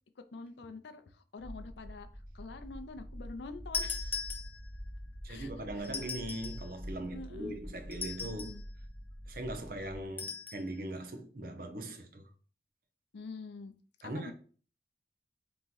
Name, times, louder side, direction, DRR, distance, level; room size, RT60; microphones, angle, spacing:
voice 1, 0.2-4.2 5.3-6.2 7.1-7.6 8.2-8.6 13.1-13.7 14.0-14.3, left 3 dB, 70° left, 0.5 m, -46 dB
sound 1, 1.4-10.1, equal, 10° right, 1.1 m, -46 dB
sound 2, 3.7-4.9 5.8-6.7 7.9-8.7 10.2-10.6, left 5 dB, 10° left, 0.4 m, -39 dB
voice 2, 5.2-8.5 9.3-12.3 14.0-14.3, right 1 dB, 50° right, 0.7 m, -40 dB
3.6 x 2.9 x 4.0 m
head